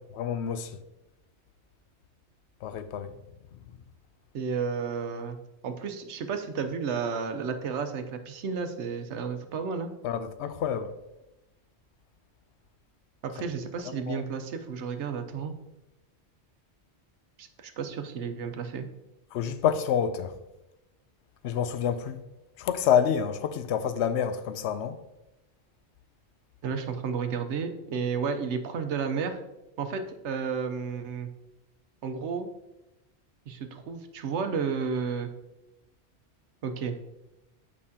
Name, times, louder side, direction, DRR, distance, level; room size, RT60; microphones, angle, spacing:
voice 1, 0.2-0.8 2.6-3.2 3.5-3.6 10.0-10.9 13.9-14.2 19.3-20.3 21.4-22.2 22.6-25.0, left 8 dB, 75° left, 0.8 m, -28 dB
voice 2, 4.3-5.4 5.6-9.9 13.2-15.5 17.4-18.9 26.6-29.4 29.8-31.3 32.0-32.5 33.5-35.3 36.6-37.0, right 5 dB, 85° right, 1.0 m, -32 dB
8.5 x 5.3 x 2.8 m
omnidirectional pair, 1.2 m